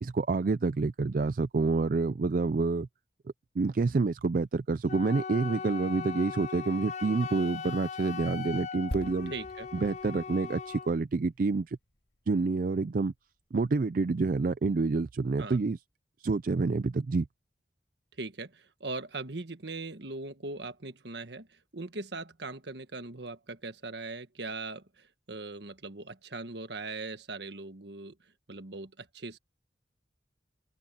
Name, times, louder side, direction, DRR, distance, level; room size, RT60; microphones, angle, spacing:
voice 1, 0.0-2.9 3.6-9.3 9.7-11.8 12.3-13.1 13.5-15.8 16.2-17.3, right 4 dB, 50° right, 0.4 m, -28 dB
Wind instrument woodwind instrument, 4.9-10.9, left 6 dB, 40° left, 0.4 m, -39 dB
sound 1, 8.9-12.6 12.8-13.0, equal, 65° left, 2.1 m, -44 dB
voice 2, 9.3-9.7 15.4-15.6 18.2-28.2 28.5-29.4, right 3 dB, 65° right, 1.5 m, -40 dB
open air
head